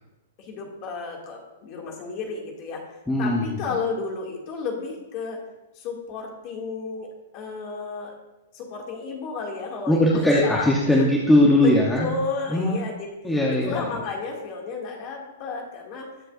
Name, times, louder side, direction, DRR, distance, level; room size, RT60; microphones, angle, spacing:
voice 1, 0.4-2.8 3.2-5.4 5.7-8.2 8.5-11.0 11.6-11.7 12.0-13.1 13.6-16.1, left 4 dB, 30° left, 0 dB, 2.3 m, -32 dB
voice 2, 3.1-3.6 9.9-12.1 12.5-12.8 13.2-13.9, left 1 dB, 5° left, -4 dB, 0.9 m, -19 dB
20.0 x 7.6 x 2.6 m, 1.0 s
hypercardioid pair, 175°, 0 cm